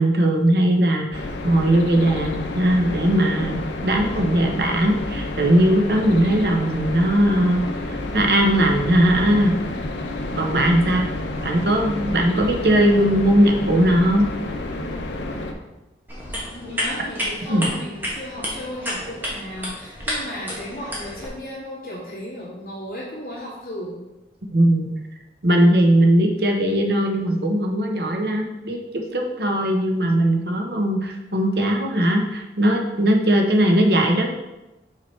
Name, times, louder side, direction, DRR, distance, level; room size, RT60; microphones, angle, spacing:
voice 1, 0.0-7.6 8.1-9.5 10.4-11.1 11.4-14.3 17.5-17.7 24.5-24.9 25.4-34.3, right 1 dB, 60° right, 2 dB, 1.0 m, -19 dB
sound 1, 1.1-15.5, left 2 dB, 85° left, 0.8 m, -30 dB
sound 2, 16.1-21.3, equal, 10° right, 1.4 m, -30 dB
voice 2, 16.5-24.0, left 1 dB, 45° left, -10 dB, 2.1 m, -35 dB
5.9 x 4.8 x 4.5 m, 1.0 s
head